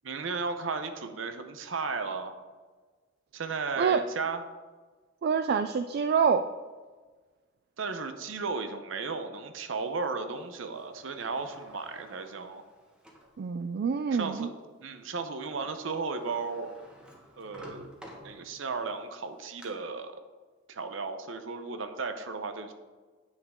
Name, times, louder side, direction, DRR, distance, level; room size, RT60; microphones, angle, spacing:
voice 1, 0.0-2.4 3.3-4.4 7.8-12.6 14.1-14.5 14.8-16.7 17.4-17.9 18.2-20.2 20.7-22.7, right 4 dB, 80° right, 8 dB, 0.7 m, -35 dB
voice 2, 5.2-6.5 13.4-14.5, right 6 dB, 55° right, 9 dB, 0.3 m, -26 dB
Sliding door, 10.7-13.4 13.9-14.0 15.3-15.4 15.6-18.8 19.2-19.7, equal, 5° right, 1.3 m, -52 dB
9.7 x 7.3 x 3.6 m, 1.4 s
head